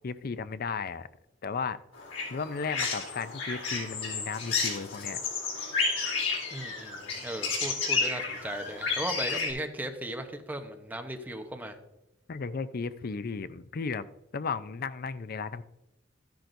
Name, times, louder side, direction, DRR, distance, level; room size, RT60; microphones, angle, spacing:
voice 1, 0.0-1.1 1.4-1.8 2.3-5.2 12.3-14.0 14.3-15.6, left 5 dB, 50° left, 14 dB, 0.5 m, -34 dB
sound 1, 2.0-9.5, left 4 dB, 90° left, 4.0 m, -31 dB
voice 2, 6.5-11.8, right 1 dB, 10° right, 5 dB, 0.9 m, -37 dB
13.0 x 10.5 x 2.6 m, 0.91 s
head